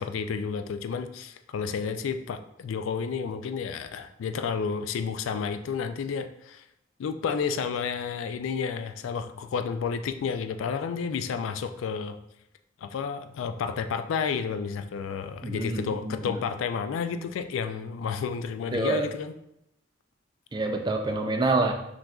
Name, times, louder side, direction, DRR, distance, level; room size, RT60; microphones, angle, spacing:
voice 1, 0.0-6.6 7.0-12.2 12.8-19.3, left 6 dB, 80° left, 9 dB, 0.3 m, -31 dB
voice 2, 15.4-16.4 18.7-19.1 20.5-21.7, right 2 dB, 20° right, 4 dB, 0.3 m, -27 dB
5.9 x 2.5 x 2.3 m, 0.79 s
head